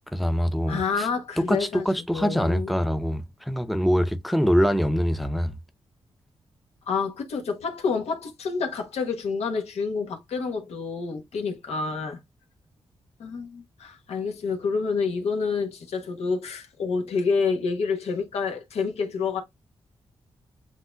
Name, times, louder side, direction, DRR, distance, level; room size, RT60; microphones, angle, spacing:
voice 1, 0.1-1.1 1.4-5.5, equal, ahead, 0.7 m, -24 dB
voice 2, 0.7-1.8 2.1-2.8 6.9-12.2 13.2-19.4, left 5 dB, 85° left, 1.2 m, -28 dB
8.0 x 2.7 x 2.3 m
cardioid pair, 60°, 11 cm